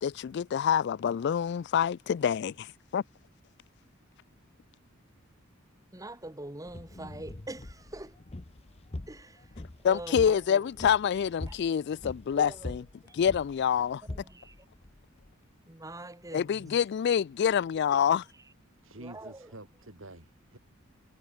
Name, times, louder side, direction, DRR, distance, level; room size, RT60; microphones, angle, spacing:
voice 1, 0.0-3.0 9.8-12.8 13.1-14.0 16.3-18.2, left 8 dB, 55° left, 0.3 m, -27 dB
voice 2, 5.9-8.2 9.1-9.6 9.8-10.7 11.5-11.6 12.4-12.8 13.0-13.2 14.1-14.6 15.7-16.8 18.9-19.5, right 1 dB, 15° right, 2.4 m, -44 dB
sound 1, 6.7-15.3, left 1 dB, 30° left, 0.8 m, -44 dB
voice 3, 18.8-20.6, right 1 dB, 70° right, 4.3 m, -48 dB
head